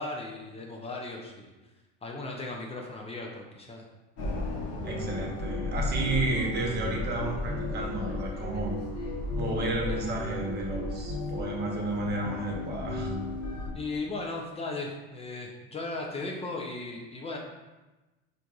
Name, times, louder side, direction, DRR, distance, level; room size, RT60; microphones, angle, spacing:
voice 1, 0.0-1.5 2.0-3.8 13.7-17.4, left 2 dB, 20° left, 0 dB, 0.5 m, -36 dB
sound 1, 4.2-13.7, left 2 dB, 55° left, 0.9 m, -33 dB
voice 2, 4.8-8.8 9.4-13.1, right 2 dB, 35° right, -1 dB, 1.0 m, -32 dB
4.4 x 2.6 x 2.3 m, 1.1 s
supercardioid pair, 95°, 29 cm